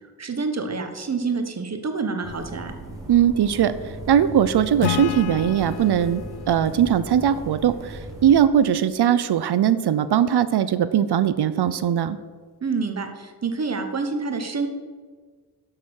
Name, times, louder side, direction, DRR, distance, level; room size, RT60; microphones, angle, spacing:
voice 1, 0.2-2.7 12.6-14.7, right 4 dB, 40° right, 6 dB, 1.2 m, -27 dB
sound 1, 2.2-8.4, right 1 dB, 10° right, 2.8 m, -37 dB
voice 2, 3.1-6.2 6.5-12.2, right 9 dB, 80° right, 14 dB, 0.6 m, -20 dB
Acoustic guitar / Strum, 4.8-8.3, left 13 dB, 85° left, 0.5 m, -32 dB
11.5 x 6.8 x 6.4 m, 1.5 s
wide cardioid pair, 175°, 39 cm